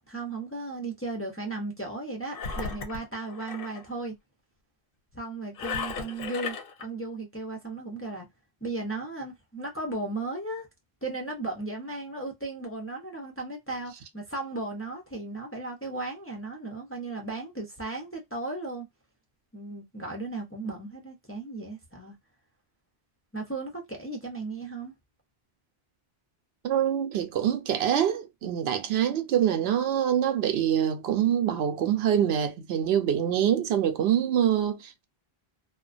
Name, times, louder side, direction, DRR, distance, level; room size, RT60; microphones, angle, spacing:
voice 1, 0.1-4.1 5.1-8.3 8.6-10.7 11.0-18.9 19.5-22.2 23.3-24.9, right 2 dB, 15° left, 0.5 m, -36 dB
Engine, 2.3-3.8 5.6-6.9, left 5 dB, 65° left, 0.8 m, -35 dB
voice 2, 26.6-35.0, right 9 dB, 80° right, 0.8 m, -25 dB
2.4 x 2.1 x 2.4 m
omnidirectional pair, 1.0 m